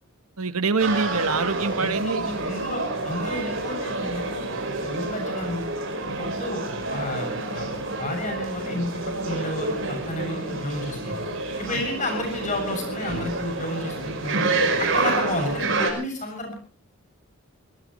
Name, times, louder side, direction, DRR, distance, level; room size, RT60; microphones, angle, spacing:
voice 1, 0.4-2.3 6.1-6.2 11.7-11.8, right 4 dB, 80° right, 11 dB, 1.3 m, -25 dB
sound 1, 0.8-15.9, right 2 dB, 55° right, 4.9 m, -28 dB
voice 2, 1.8-4.4 4.8-5.7 6.2-6.6 6.9-7.7 8.0-11.2 11.6-14.5 14.8-16.5, left 1 dB, 35° left, 3 dB, 7.4 m, -31 dB
24.5 x 18.5 x 3.2 m, 0.40 s
head